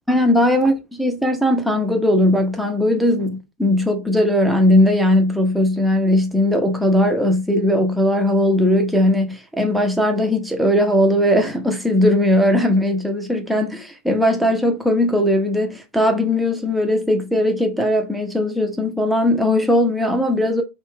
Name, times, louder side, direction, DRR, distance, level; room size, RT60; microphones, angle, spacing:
voice 1, 0.1-20.6, left 1 dB, ahead, 0.3 m, -18 dB
2.6 x 2.1 x 3.0 m
hypercardioid pair, 130°, 7 cm